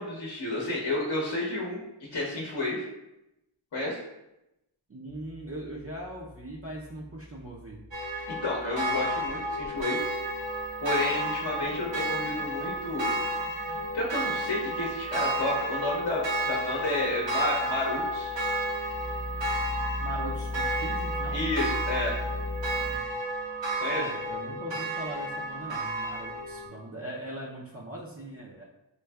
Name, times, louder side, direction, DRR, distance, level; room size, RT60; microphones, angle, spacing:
voice 1, 0.0-2.8 3.7-4.0 8.3-10.0 10.8-13.1 13.9-18.3 21.3-22.2 23.8-24.0, left 2 dB, 55° left, -3 dB, 0.8 m, -31 dB
voice 2, 4.9-7.8 20.0-21.4 24.0-28.6, right 1 dB, 30° right, -4 dB, 0.5 m, -40 dB
sound 1, 5.1-23.0, left 2 dB, 20° left, 0.8 m, -41 dB
sound 2, 7.9-26.7, right 1 dB, 65° right, 0.8 m, -32 dB
4.6 x 2.5 x 2.2 m, 0.89 s
wide cardioid pair, 40°, 48 cm